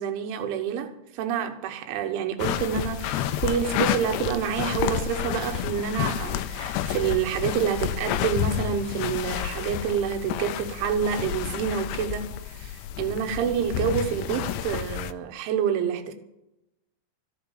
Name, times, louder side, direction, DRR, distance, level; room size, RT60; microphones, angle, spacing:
voice 1, 0.0-16.1, right 8 dB, 75° right, 3.7 m, -28 dB
sound 1, 2.4-15.1, left 11 dB, 85° left, 2.5 m, -30 dB
14.0 x 11.5 x 7.2 m
omnidirectional pair, 5.6 m